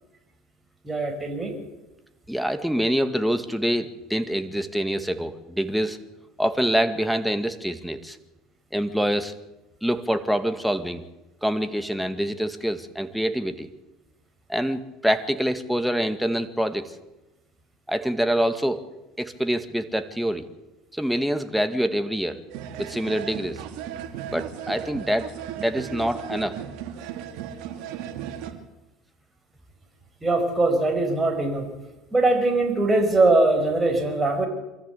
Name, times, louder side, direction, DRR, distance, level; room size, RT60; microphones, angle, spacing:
voice 1, 0.8-1.5 30.2-31.7 32.1-34.5, right 2 dB, 15° right, 3 dB, 5.4 m, -21 dB
voice 2, 2.3-6.0 6.4-8.2 8.7-9.3 9.8-11.0 11.4-13.7 14.5-16.9 17.9-18.8 19.2-20.4 20.9-22.4 22.8-23.6 24.3-25.3 25.6-26.6, equal, ahead, 8 dB, 2.0 m, -25 dB
sound 1, 22.5-28.5, right 9 dB, 70° right, 2.6 m, -36 dB
24.0 x 14.5 x 8.5 m, 1.0 s
supercardioid pair, 95°, 0 cm